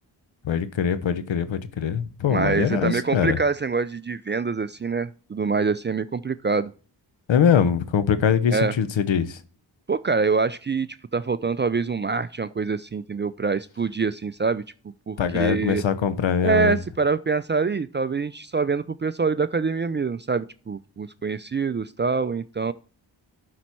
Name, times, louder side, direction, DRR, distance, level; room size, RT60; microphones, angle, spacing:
voice 1, 0.4-3.4 7.3-9.4 15.2-16.7, left 7 dB, 70° left, 0.9 m, -22 dB
voice 2, 2.3-6.7 8.5-8.8 9.9-10.9 11.1-14.6 15.1-15.8 16.4-22.7, right 4 dB, 25° right, 0.4 m, -25 dB
11.5 x 4.3 x 4.6 m
cardioid pair, 40°, 48 cm